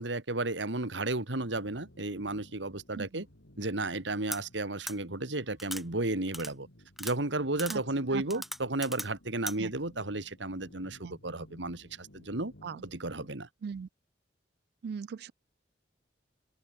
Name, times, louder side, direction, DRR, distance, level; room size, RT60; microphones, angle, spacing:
voice 1, 0.0-3.3 3.6-6.7 7.0-12.5 12.8-13.5, right 2 dB, 75° right, 2.4 m, -33 dB
sound 1, 1.4-13.3, left 1 dB, 80° left, 4.6 m, -57 dB
sound 2, 4.3-4.4 4.9-5.0 5.6-5.8 6.3-6.5 7.0-7.1 7.6-7.8 8.3-9.1 9.5-9.6, equal, ahead, 2.8 m, -38 dB
voice 2, 14.8-15.3, right 6 dB, 55° right, 0.3 m, -39 dB
open air
head